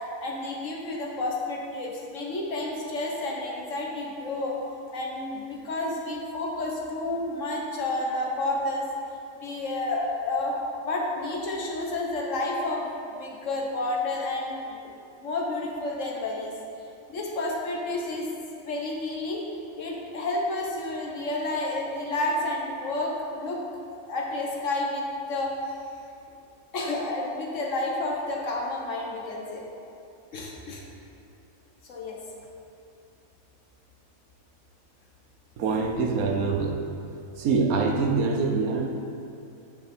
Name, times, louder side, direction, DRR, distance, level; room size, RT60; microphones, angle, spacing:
voice 1, 0.2-4.6 4.9-8.9 9.4-10.6 10.8-12.9 13.2-14.9 15.2-16.5 17.1-18.3 18.6-19.4 19.8-23.6 24.1-25.8 26.7-29.6 30.3-30.8 31.8-32.2, left 2 dB, 60° left, -1 dB, 1.6 m, -30 dB
voice 2, 35.6-36.8 37.4-38.9, right 4 dB, 80° right, 3 dB, 1.3 m, -24 dB
9.0 x 7.1 x 4.4 m, 2.6 s
omnidirectional pair, 1.5 m